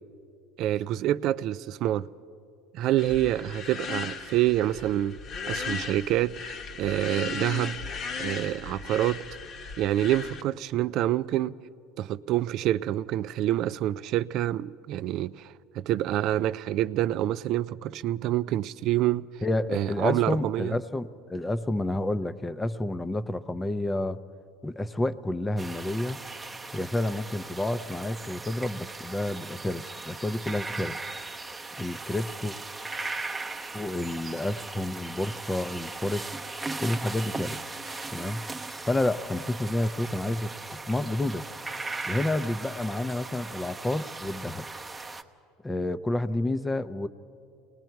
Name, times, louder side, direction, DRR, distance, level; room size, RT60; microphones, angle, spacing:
voice 1, 0.6-2.1 2.7-5.2 5.5-6.3 6.8-7.8 8.2-9.2 9.8-11.5 12.0-19.3 19.7-20.8, right 13 dB, 55° right, 0.4 m, -27 dB
sound 1, 3.0-10.4, left 5 dB, 45° left, 1.1 m, -37 dB
voice 2, 19.4-24.2 24.6-26.2 26.7-31.0 31.8-32.6 33.7-36.3 36.8-37.7 38.1-38.4 38.9-41.5 42.1-44.6 45.6-47.1, left 1 dB, 10° left, 0.6 m, -30 dB
sound 2, 25.6-45.2, right 3 dB, 15° right, 0.8 m, -38 dB
29.0 x 19.5 x 4.6 m
supercardioid pair, 110°, 0 cm